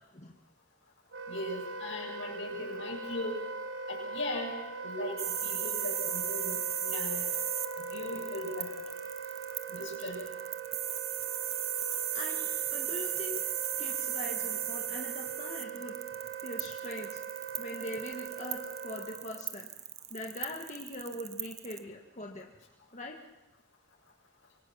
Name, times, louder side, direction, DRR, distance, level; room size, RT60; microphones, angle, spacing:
Wind instrument woodwind instrument, 1.1-19.3, right 4 dB, 90° right, 4.4 m, -41 dB
voice 1, 1.3-3.4 3.9-4.5 4.8-7.2 7.9-8.7 9.7-10.3, left 1 dB, 90° left, 1 dB, 6.8 m, -38 dB
sound 1, 5.2-21.8, right 11 dB, 35° right, 1.0 m, -35 dB
voice 2, 12.1-13.4 13.8-15.9 16.4-17.2 17.6-19.7 20.1-22.5 22.9-23.2, left 1 dB, 40° left, 0 dB, 2.0 m, -42 dB
25.0 x 23.5 x 5.9 m, 0.96 s
head